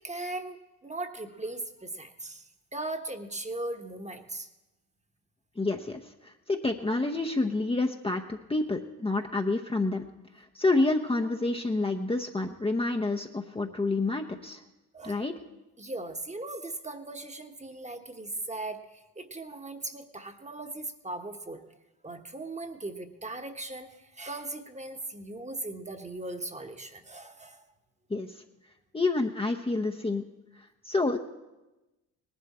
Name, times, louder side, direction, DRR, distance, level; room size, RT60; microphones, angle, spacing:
voice 1, 0.0-2.4 2.7-4.5 14.9-15.3 15.8-21.6 22.0-27.6, right 2 dB, 15° right, 6 dB, 1.3 m, -38 dB
voice 2, 5.6-10.0 10.4-14.6 15.0-15.3 28.1-28.3 28.9-30.2 30.8-31.2, left 2 dB, 15° left, 2 dB, 0.8 m, -28 dB
18.5 x 11.5 x 4.3 m, 1.0 s
supercardioid pair, 70°, 41 cm